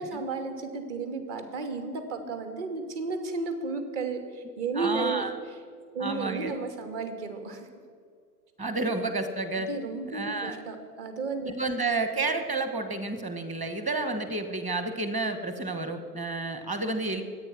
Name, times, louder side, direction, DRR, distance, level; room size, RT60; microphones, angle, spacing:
voice 1, 0.0-5.6 5.9-7.7 9.6-11.6, right 3 dB, 45° right, 6 dB, 2.6 m, -33 dB
voice 2, 4.8-5.3 6.0-6.6 8.6-9.7 10.1-10.6 11.6-17.2, right 3 dB, 15° right, 9 dB, 1.3 m, -30 dB
24.0 x 9.0 x 6.1 m, 2.1 s
hypercardioid pair, 135°, 49 cm